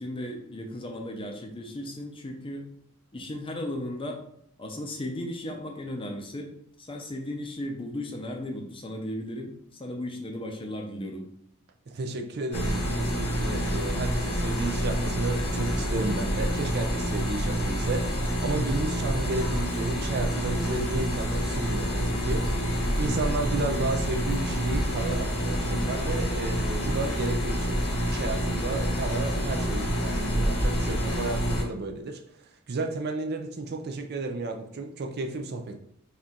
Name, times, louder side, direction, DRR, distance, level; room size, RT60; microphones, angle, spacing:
voice 1, 0.0-2.7 3.1-4.2 4.6-6.5 6.8-11.3, left 1 dB, 25° left, 2 dB, 0.6 m, -35 dB
voice 2, 11.9-22.7 23.0-32.2 32.7-35.8, right 3 dB, 50° right, 4 dB, 0.4 m, -32 dB
sound 1, 12.5-31.6, equal, 85° left, 1.1 m, -27 dB
4.3 x 2.4 x 3.7 m, 0.69 s
head